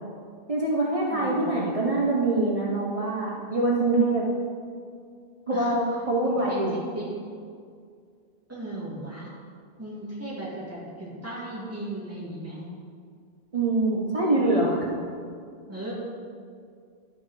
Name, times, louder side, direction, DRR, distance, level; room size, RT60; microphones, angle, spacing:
voice 1, 0.5-4.2 5.5-6.8 13.5-14.8, right 2 dB, 35° right, -4 dB, 0.9 m, -24 dB
voice 2, 1.1-1.5 5.5-5.7 6.2-7.1 8.5-9.3 9.8-12.6 14.1-14.9 15.7-15.9, right 1 dB, 15° right, -7 dB, 2.2 m, -36 dB
12.0 x 4.4 x 4.8 m, 2.2 s
omnidirectional pair, 1.0 m